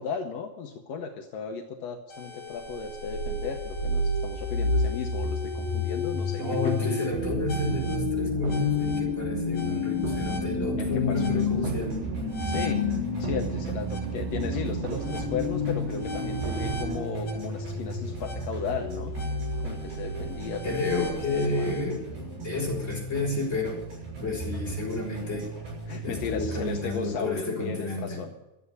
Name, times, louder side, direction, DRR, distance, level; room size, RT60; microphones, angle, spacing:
voice 1, 0.0-6.9 10.8-11.5 12.5-12.8 13.2-19.1 19.6-21.7 25.9-28.3, left 6 dB, 70° left, 4 dB, 1.6 m, -36 dB
sound 1, 2.1-21.8, left 4 dB, 55° left, 4.0 m, -31 dB
voice 2, 6.4-12.0 20.6-22.1 22.4-23.8 24.2-25.5 26.0-28.2, left 2 dB, 20° left, -3 dB, 4.9 m, -31 dB
sound 2, 7.1-17.0, right 11 dB, 80° right, 2.5 m, -35 dB
sound 3, 11.2-27.1, right 3 dB, 55° right, 7.7 m, -38 dB
12.5 x 8.3 x 9.6 m, 0.99 s
omnidirectional pair, 4.2 m